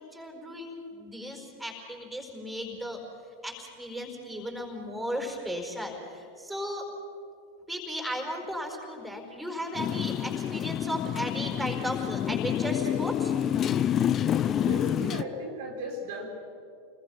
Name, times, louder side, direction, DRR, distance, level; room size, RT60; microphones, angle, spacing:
voice 1, 0.0-3.0 3.4-6.9 7.7-13.3, equal, ahead, 2 dB, 4.7 m, -35 dB
Motorcycle, 9.8-15.2, left 10 dB, 30° left, 0.6 m, -28 dB
voice 2, 14.4-16.3, equal, 50° right, 2 dB, 3.1 m, -36 dB
29.0 x 21.0 x 5.8 m, 2.5 s
figure-of-eight pair, 90°, 0 cm